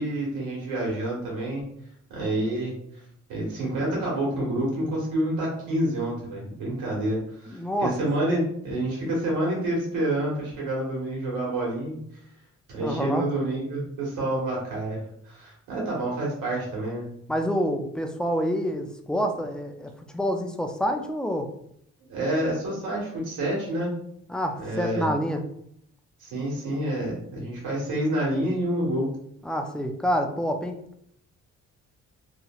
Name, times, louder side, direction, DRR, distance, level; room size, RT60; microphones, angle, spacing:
voice 1, 0.0-1.7 2.1-2.8 3.3-12.0 12.7-15.0 15.2-17.1 22.1-23.9 24.6-25.1 26.2-29.1, right 1 dB, 85° right, -4 dB, 1.5 m, -28 dB
voice 2, 7.5-7.9 12.8-13.3 17.3-21.5 24.3-25.4 29.4-30.8, equal, 5° left, 4 dB, 0.3 m, -27 dB
2.9 x 2.8 x 2.3 m, 0.71 s
cardioid pair, 90°, 30 cm